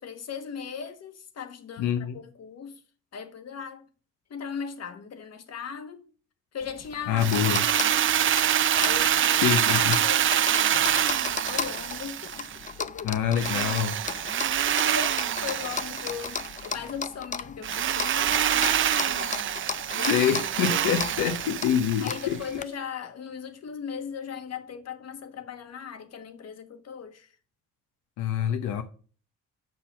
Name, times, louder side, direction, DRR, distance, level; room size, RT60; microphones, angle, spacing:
voice 1, 0.0-2.8 3.1-3.9 4.3-6.0 6.5-8.1 8.8-12.5 12.8-13.1 14.8-19.4 19.9-20.3 22.0-27.3, left 7 dB, 55° left, 1.5 m, -38 dB
voice 2, 1.8-2.2 7.1-7.7 9.3-10.0 13.0-14.0 20.1-22.4 28.2-28.8, left 9 dB, 85° left, 0.8 m, -26 dB
sound 1, 6.6-22.6, left 6 dB, 25° left, 0.5 m, -36 dB
Drill, 7.2-12.7 13.4-16.7 17.6-22.4, right 10 dB, 40° right, 0.5 m, -26 dB
6.8 x 5.7 x 7.3 m
cardioid pair, 90°, 30 cm